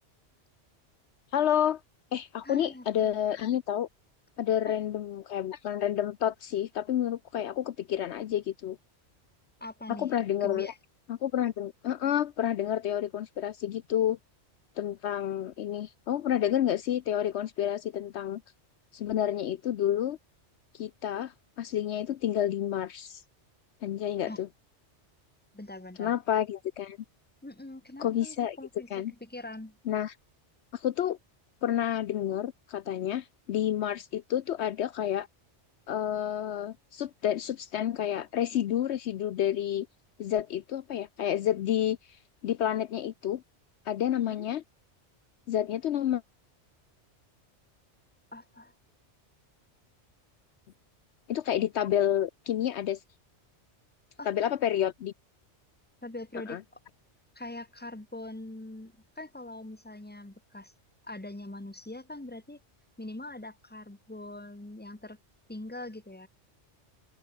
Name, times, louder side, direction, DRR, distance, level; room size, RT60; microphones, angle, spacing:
voice 1, 1.3-1.8 2.1-3.9 4.4-8.8 9.9-10.7 11.1-14.2 14.8-18.4 18.9-20.2 20.7-23.2 23.8-24.5 26.0-27.0 28.0-28.6 28.9-29.1 29.9-30.1 30.7-31.2 31.6-35.3 35.9-39.9 40.2-42.0 42.4-43.4 43.9-44.6 45.5-46.2 51.3-53.0 54.3-55.1 56.5-56.6, left 10 dB, 70° left, 0.9 m, -29 dB
voice 2, 2.4-3.2 4.7-4.8 9.6-10.1 10.4-10.7 24.3-24.4 25.5-26.2 27.4-28.9 29.2-29.8 44.2-44.5 48.3-48.7 54.2-54.3 56.0-56.6 57.3-60.7 61.0-62.6 63.0-65.2 65.5-66.3, left 2 dB, 10° left, 1.5 m, -42 dB
open air
omnidirectional pair, 1.2 m